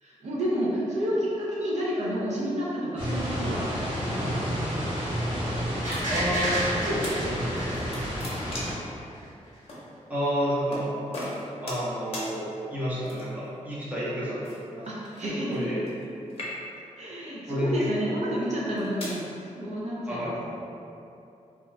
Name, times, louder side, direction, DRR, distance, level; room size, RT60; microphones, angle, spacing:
voice 1, 0.0-3.7 4.1-4.7 14.9-15.8 17.0-20.4, equal, 60° right, -7 dB, 0.5 m, -30 dB
sound 1, 3.0-8.7, equal, 40° right, 0.9 m, -30 dB
voice 2, 4.1-4.4 6.1-7.7 10.1-10.9 11.6-14.4 14.7-14.8 15.5-15.8 17.5-17.7 20.1-20.4, equal, 10° right, -9 dB, 0.6 m, -30 dB
sound 2, 5.8-8.8 9.1-9.2, right 1 dB, 80° right, 1.3 m, -31 dB
sound 3, 5.9-6.7 7.0-7.2 7.6-8.9 9.7-9.8 10.7-10.9 11.1-11.9 12.1-12.3 13.0-13.5 14.4-16.0 16.3-16.9 17.6-17.8 18.5-19.2, left 1 dB, 45° left, 0.7 m, -38 dB
2.4 x 2.3 x 3.1 m, 2.7 s
wide cardioid pair, 155°, 13 cm